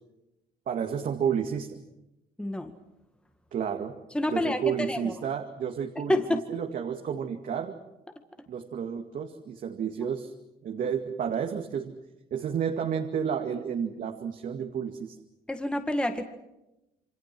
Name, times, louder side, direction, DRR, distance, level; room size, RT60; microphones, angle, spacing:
voice 1, 0.7-1.8 3.5-4.0 4.3-7.8 8.5-10.3 10.6-11.9 12.3-15.2, right 7 dB, 55° right, 3 dB, 2.2 m, -31 dB
voice 2, 2.4-2.8 4.1-5.1 6.1-6.4 15.5-16.2, left 1 dB, 5° left, 7 dB, 2.0 m, -28 dB
28.5 x 25.0 x 6.2 m, 0.92 s
cardioid pair, 110°, 17 cm